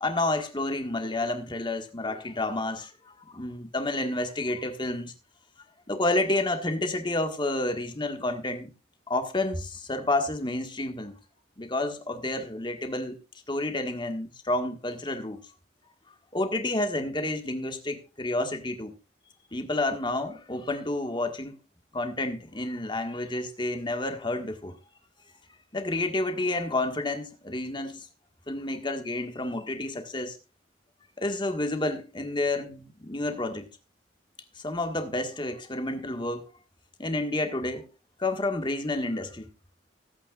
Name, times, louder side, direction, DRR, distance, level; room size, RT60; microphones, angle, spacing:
voice 1, 0.0-5.1 5.9-8.7 9.1-11.1 11.6-13.2 13.5-15.4 16.3-18.9 19.5-21.6 21.9-24.8 25.7-28.1 28.5-30.4 31.2-33.7 34.6-36.4 37.0-37.9 38.2-39.5, left 2 dB, 25° left, 1.6 m, -30 dB
24.5 x 8.7 x 2.4 m
head